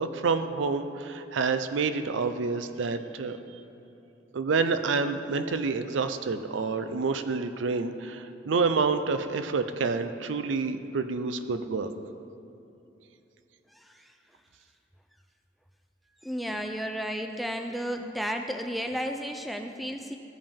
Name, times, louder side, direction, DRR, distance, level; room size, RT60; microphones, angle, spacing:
voice 1, 0.0-3.4 4.3-11.9, right 4 dB, 90° right, 9 dB, 0.5 m, -28 dB
voice 2, 13.7-14.2 16.2-20.2, equal, ahead, 4 dB, 0.3 m, -33 dB
14.5 x 5.3 x 3.5 m, 2.9 s
head